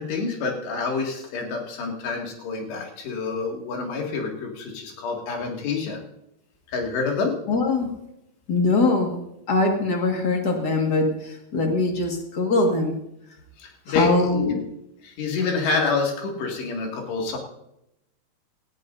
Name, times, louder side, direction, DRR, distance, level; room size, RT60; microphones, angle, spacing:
voice 1, 0.0-6.0 6.7-7.3 13.6-14.6 15.0-17.4, left 4 dB, 85° left, 0 dB, 4.4 m, -27 dB
voice 2, 7.5-7.9 8.5-9.1 9.5-12.9 13.9-14.5, left 3 dB, 45° left, 2 dB, 1.2 m, -22 dB
18.5 x 14.0 x 2.6 m, 0.82 s
omnidirectional pair, 4.8 m